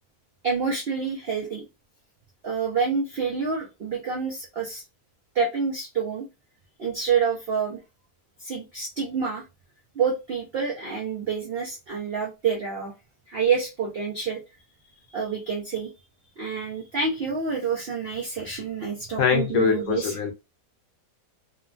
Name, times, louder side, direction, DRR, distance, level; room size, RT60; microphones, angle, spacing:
voice 1, 0.4-1.6 2.4-4.8 5.3-6.2 6.8-7.8 8.4-9.4 9.9-12.9 13.3-14.4 15.1-15.9 16.4-20.2, right 5 dB, 65° right, 0.5 m, -27 dB
voice 2, 19.2-20.3, left 6 dB, 65° left, 0.9 m, -23 dB
3.0 x 2.2 x 2.4 m
omnidirectional pair, 1.8 m